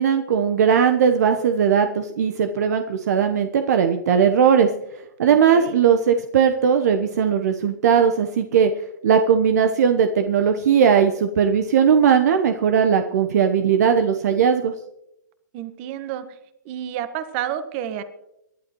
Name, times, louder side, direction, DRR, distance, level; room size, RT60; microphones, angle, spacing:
voice 1, 0.0-4.7 5.2-8.7 9.0-14.7, right 7 dB, 55° right, 6 dB, 1.1 m, -18 dB
voice 2, 5.3-5.8 15.5-16.4 16.6-18.0, right 10 dB, 40° right, 11 dB, 1.5 m, -30 dB
27.0 x 11.5 x 3.1 m, 0.85 s
hypercardioid pair, 125°, 10 cm